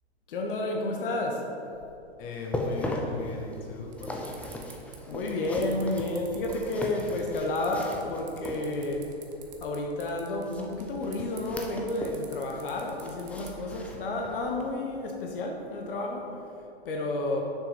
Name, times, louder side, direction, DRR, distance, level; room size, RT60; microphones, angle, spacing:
voice 1, 0.3-1.5 5.1-9.1 9.6-16.3 16.8-17.4, left 2 dB, 55° left, 1 dB, 1.1 m, -31 dB
voice 2, 2.2-4.3, left 4 dB, 30° left, 0 dB, 1.3 m, -39 dB
sound 1, 2.3-9.1 10.4-12.3 12.5-14.5 14.9-15.1 15.6-15.7, left 1 dB, 5° left, 0.5 m, -38 dB
sound 2, 3.1-14.6, right 4 dB, 25° right, 0.9 m, -50 dB
6.8 x 6.4 x 5.0 m, 2.9 s
figure-of-eight pair, 110°, 33 cm